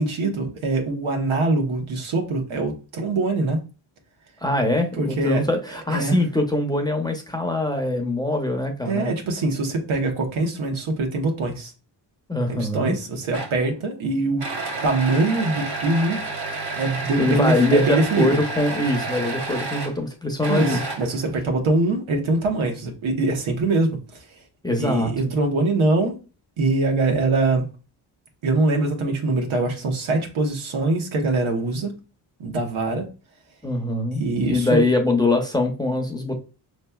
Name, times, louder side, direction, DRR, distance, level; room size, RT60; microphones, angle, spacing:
voice 1, 0.0-3.6 4.9-5.4 5.9-6.2 8.9-11.7 12.5-14.5 14.8-16.2 16.8-18.4 20.5-24.2 24.8-26.1 26.6-27.7 28.4-31.9 32.4-33.1 34.2-34.8, right 2 dB, 80° right, 3 dB, 1.1 m, -23 dB
voice 2, 4.4-9.1 12.3-13.0 17.2-20.8 24.6-25.3 33.6-36.4, left 2 dB, 10° left, 2 dB, 0.7 m, -23 dB
sound 1, 13.3-13.7 14.4-20.0 20.4-21.3, right 3 dB, 55° right, 1.0 m, -30 dB
5.5 x 3.1 x 2.3 m, 0.33 s
cardioid pair, 100°, 47 cm